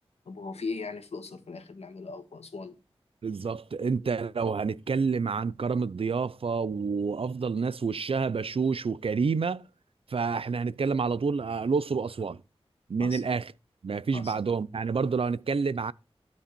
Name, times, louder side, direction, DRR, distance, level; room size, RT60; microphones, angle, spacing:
voice 1, 0.3-2.8 13.0-13.2 14.1-14.3, left 4 dB, 85° left, 1.7 m, -38 dB
voice 2, 3.2-9.6 10.1-12.4 12.9-13.5 13.8-15.9, right 5 dB, 65° right, 0.6 m, -28 dB
13.0 x 5.3 x 7.0 m
wide cardioid pair, 95°, 11 cm